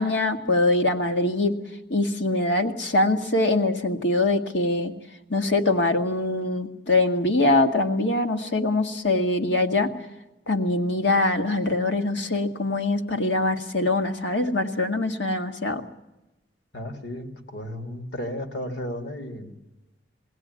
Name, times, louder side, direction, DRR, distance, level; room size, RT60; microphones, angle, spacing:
voice 1, 0.0-1.5 1.9-4.9 5.3-9.9 10.5-15.8, left 2 dB, 90° left, 5 dB, 1.8 m, -23 dB
voice 2, 16.7-19.6, left 1 dB, 75° left, 6 dB, 2.7 m, -34 dB
22.0 x 17.0 x 9.5 m, 0.98 s
head